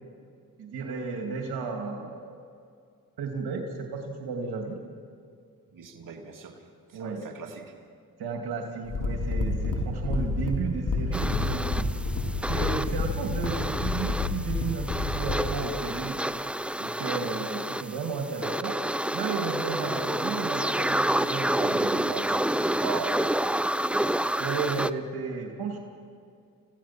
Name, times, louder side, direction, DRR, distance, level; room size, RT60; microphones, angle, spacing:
voice 1, 0.6-2.4 3.2-3.6 3.9-4.8 6.9-7.2 8.2-11.9 12.5-16.2 16.8-18.8 19.1-22.0 24.4-25.8, right 4 dB, 80° right, 2 dB, 2.5 m, -33 dB
voice 2, 5.7-6.6 6.9-7.8 17.0-17.3 19.8-19.9 21.4-22.4 22.7-23.5, right 5 dB, 55° right, 1 dB, 2.8 m, -38 dB
sound 1, 8.9-15.6, left 3 dB, 55° left, 4.1 m, -29 dB
sound 2, 11.1-24.9, right 1 dB, 5° right, 0.6 m, -29 dB
30.0 x 16.0 x 6.0 m, 2.3 s
supercardioid pair, 65°, 37 cm